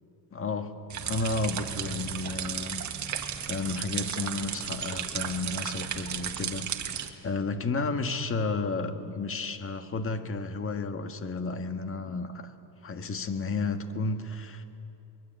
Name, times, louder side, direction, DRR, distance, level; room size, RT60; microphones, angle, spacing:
voice 1, 0.3-2.8 3.5-12.5 12.8-14.7, left 3 dB, 25° left, 8 dB, 1.7 m, -32 dB
sound 1, 0.9-7.1, right 9 dB, 35° right, 1.9 m, -34 dB
23.5 x 21.5 x 9.1 m, 2.8 s
cardioid pair, 125°, 47 cm